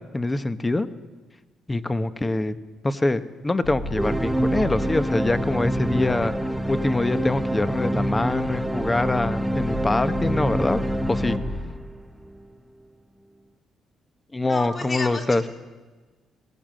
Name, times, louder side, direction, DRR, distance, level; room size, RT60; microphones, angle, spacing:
voice 1, 0.1-0.9 1.7-2.6 2.8-6.4 6.7-10.8 11.1-11.4 14.3-15.4, left 2 dB, 20° left, 12 dB, 1.1 m, -24 dB
sound 1, 3.6-11.7, left 1 dB, 80° left, 3.8 m, -35 dB
sound 2, 4.0-12.4, right 1 dB, 5° right, 0.8 m, -26 dB
voice 2, 14.4-15.5, left 3 dB, 35° left, 4 dB, 2.9 m, -32 dB
20.5 x 16.5 x 7.6 m, 1.3 s
cardioid pair, 90°, 0 cm